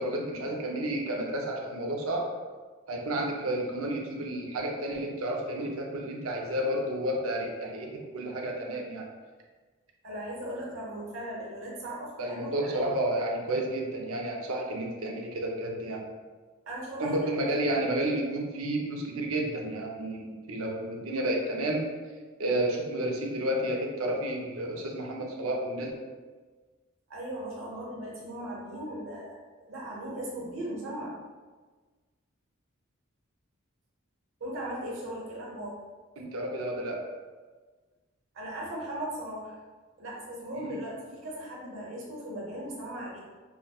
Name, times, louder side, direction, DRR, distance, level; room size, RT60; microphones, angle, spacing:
voice 1, 0.0-2.3 2.9-9.0 12.2-16.0 17.0-21.9 22.4-25.9 36.2-37.0 40.6-40.8, right 1 dB, 80° right, 0 dB, 0.6 m, -31 dB
voice 2, 10.0-12.9 16.7-17.1 27.1-31.2 34.4-35.8 38.3-39.6 40.0-43.2, right 1 dB, 65° right, -4 dB, 1.1 m, -38 dB
5.7 x 2.2 x 2.3 m, 1.4 s
head